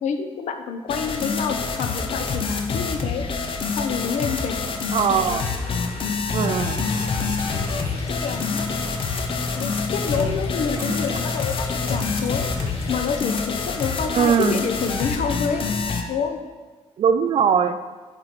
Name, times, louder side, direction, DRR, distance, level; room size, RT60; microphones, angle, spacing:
voice 1, 0.0-3.2 3.7-4.6 5.3-5.4 6.5-6.6 8.1-8.7 9.1-9.2 9.5-12.5 12.9-15.6 16.1-16.4, left 6 dB, 90° left, 7 dB, 0.9 m, -28 dB
sound 1, 0.9-16.0, left 4 dB, 50° left, 0.8 m, -27 dB
voice 2, 4.9-5.4 6.3-6.8 14.1-14.6 17.0-17.8, right 7 dB, 55° right, 11 dB, 0.5 m, -20 dB
sound 2, 6.2-13.0, left 2 dB, 25° left, 1.3 m, -32 dB
9.0 x 4.9 x 6.0 m, 1.3 s
wide cardioid pair, 180°, 12 cm